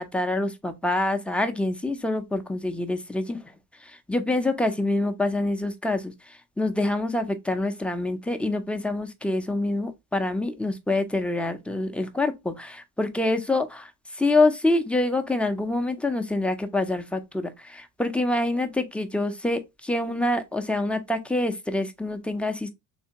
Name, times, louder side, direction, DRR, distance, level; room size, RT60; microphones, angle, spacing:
voice 1, 0.0-3.4 3.8-22.7, left 2 dB, 5° left, 0.4 m, -26 dB
3.4 x 2.8 x 2.8 m
cardioid pair, 90°, 40 cm